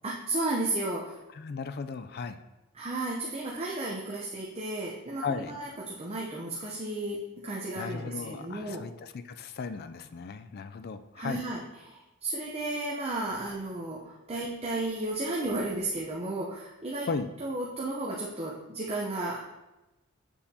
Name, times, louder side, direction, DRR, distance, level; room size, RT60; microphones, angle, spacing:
voice 1, 0.0-1.2 2.7-8.8 11.2-17.1 17.4-19.5, right 2 dB, 30° right, -3 dB, 0.7 m, -33 dB
voice 2, 1.3-2.4 5.2-5.6 7.8-11.4 17.0-17.3, left 5 dB, 45° left, 11 dB, 0.4 m, -36 dB
7.2 x 6.9 x 2.8 m, 1.0 s
head